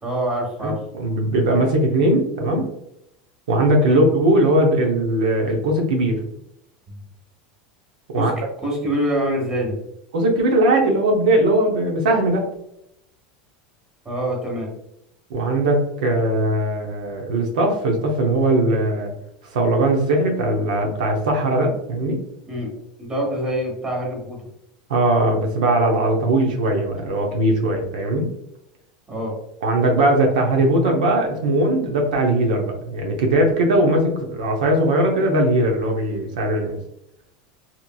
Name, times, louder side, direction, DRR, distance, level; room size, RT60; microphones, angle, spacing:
voice 1, 0.0-0.7 3.9-4.0 6.9-7.0 8.2-8.3 8.6-9.7 14.0-14.7 22.5-22.7 23.0-24.4 29.1-29.3, right 1 dB, 15° right, -2 dB, 1.2 m, -25 dB
voice 2, 0.6-2.7 3.5-6.1 8.1-8.3 10.1-12.4 15.3-19.1 19.4-22.2 24.9-28.3 29.6-36.8, right 1 dB, 90° right, 2 dB, 0.6 m, -19 dB
2.9 x 2.5 x 2.2 m, 0.79 s
supercardioid pair, 115°, 4 cm